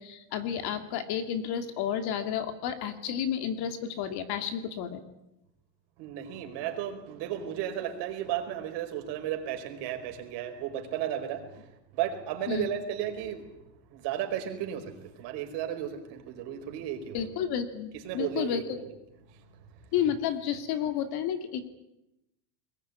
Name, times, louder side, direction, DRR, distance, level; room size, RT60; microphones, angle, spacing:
voice 1, 0.0-5.0 12.5-12.7 17.1-18.8 19.9-21.7, left 9 dB, 50° left, 9 dB, 2.7 m, -31 dB
voice 2, 6.0-13.4 13.9-17.3 17.9-18.6 19.3-19.6, right 10 dB, 55° right, 4 dB, 5.0 m, -34 dB
22.0 x 19.5 x 9.7 m, 0.89 s
supercardioid pair, 145°, 50 cm